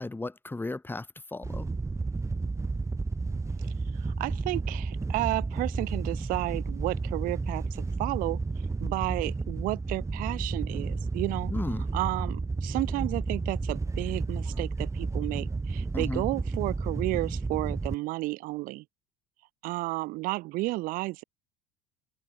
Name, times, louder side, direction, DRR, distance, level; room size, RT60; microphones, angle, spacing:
voice 1, 0.0-1.7 11.5-11.9 15.9-16.2, left 2 dB, 10° left, 2.4 m, -35 dB
Wind / Boat Water vehicle, 1.4-17.9, right 3 dB, 20° right, 6.0 m, -32 dB
voice 2, 4.0-7.6 8.0-8.4 8.8-11.5 11.9-18.8 19.6-21.2, right 20 dB, 60° right, 3.4 m, -32 dB
open air
hypercardioid pair, 70°, 16 cm